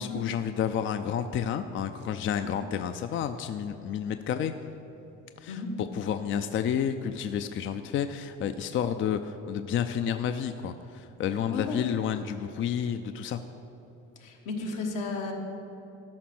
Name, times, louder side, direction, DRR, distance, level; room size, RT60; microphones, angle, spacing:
voice 1, 0.0-4.5 5.4-5.5 5.9-13.4, left 8 dB, 40° left, 9 dB, 0.4 m, -30 dB
voice 2, 5.5-5.8 11.5-11.8 14.2-15.3, left 3 dB, 80° left, 1 dB, 1.6 m, -33 dB
13.0 x 5.3 x 6.0 m, 3.0 s
cardioid pair, 95°, 31 cm